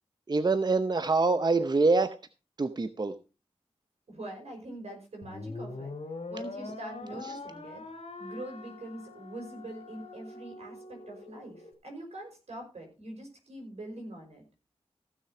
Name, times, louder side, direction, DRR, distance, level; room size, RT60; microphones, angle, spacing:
voice 1, 0.3-2.1 2.6-3.1, right 3 dB, 40° right, 11 dB, 0.7 m, -25 dB
voice 2, 4.1-5.9 6.3-7.8 8.2-14.4, right 1 dB, 85° right, 2 dB, 5.6 m, -43 dB
sound 1, 5.2-11.7, left 3 dB, 80° left, 2.7 m, -43 dB
15.5 x 6.6 x 4.9 m, 0.33 s
wide cardioid pair, 85°, 11 cm